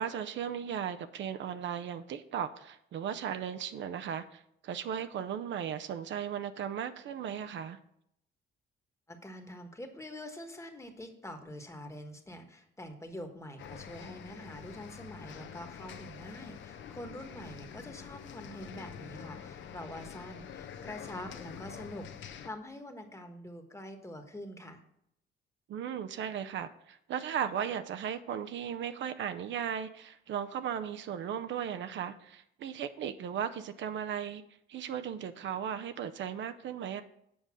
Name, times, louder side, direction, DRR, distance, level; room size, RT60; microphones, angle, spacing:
voice 1, 0.0-7.8 25.7-34.4 34.7-37.0, right 8 dB, 70° right, 9 dB, 0.6 m, -36 dB
voice 2, 9.1-24.8, left 1 dB, 15° left, 6 dB, 1.3 m, -45 dB
sound 1, 13.6-22.5, left 8 dB, 70° left, 0.8 m, -46 dB
7.9 x 5.1 x 6.2 m, 0.75 s
cardioid pair, 90°, 20 cm